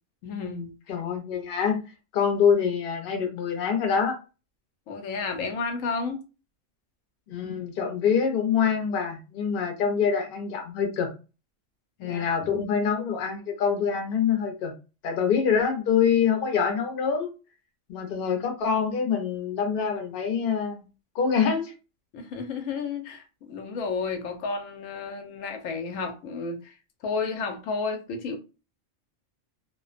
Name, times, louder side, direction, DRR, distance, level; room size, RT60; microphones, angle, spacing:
voice 1, 0.2-0.7 4.9-6.2 12.0-12.6 22.1-26.8 27.0-28.4, left 4 dB, 85° left, 1.0 m, -32 dB
voice 2, 0.9-1.8 2.1-4.2 7.3-11.1 12.0-14.7 15.0-17.3 17.9-20.8 21.1-21.7, left 7 dB, 55° left, 0.7 m, -25 dB
2.4 x 2.1 x 2.4 m
omnidirectional pair, 1.3 m